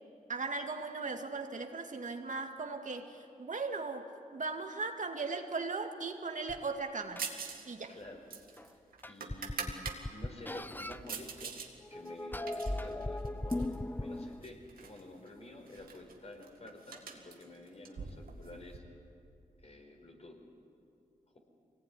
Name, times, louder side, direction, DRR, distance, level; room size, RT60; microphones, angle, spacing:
voice 1, 0.3-4.0 4.3-7.3 7.7-8.0, right 4 dB, 60° right, 4 dB, 2.1 m, -38 dB
sound 1, 6.5-6.6 7.2-7.3 8.6-8.7 9.0-11.0 11.8-14.5, left 1 dB, 15° left, 0.8 m, -38 dB
sound 2, 7.2-7.7 7.9-10.0 10.5-11.7 12.1-13.8 14.4-15.0 15.3-15.4 15.7-18.8, right 6 dB, 90° right, 2.2 m, -44 dB
voice 2, 7.9-8.2 8.6-8.8 9.0-11.6 11.9-18.8 19.6-20.4, left 1 dB, 45° left, 2 dB, 4.8 m, -50 dB
23.5 x 19.0 x 9.8 m, 2.6 s
cardioid pair, 55°, 15 cm